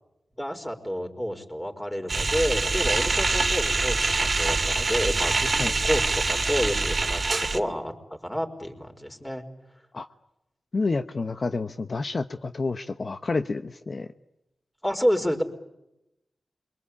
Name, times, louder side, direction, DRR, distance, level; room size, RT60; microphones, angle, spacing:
voice 1, 0.4-6.0 6.3-7.9 8.2-9.4 14.8-15.4, equal, 10° left, 4 dB, 4.7 m, -29 dB
sound 1, 2.1-7.6, right 3 dB, 50° right, 2.1 m, -25 dB
voice 2, 10.7-14.1, left 3 dB, 55° left, 8 dB, 1.0 m, -29 dB
28.0 x 23.5 x 8.6 m, 0.90 s
cardioid pair, 50°, 0 cm